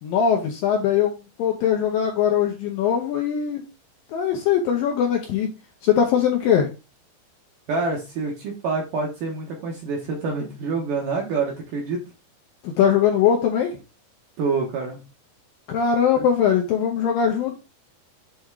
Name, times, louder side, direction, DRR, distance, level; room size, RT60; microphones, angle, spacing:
voice 1, 0.0-3.6 4.1-5.5 5.8-6.7 12.6-13.8 15.7-17.5, left 8 dB, 75° left, 2 dB, 2.1 m, -21 dB
voice 2, 7.7-12.0 14.4-15.0 16.2-16.3, right 4 dB, 70° right, 0 dB, 2.1 m, -27 dB
7.8 x 3.6 x 4.7 m, 0.29 s
omnidirectional pair, 5.1 m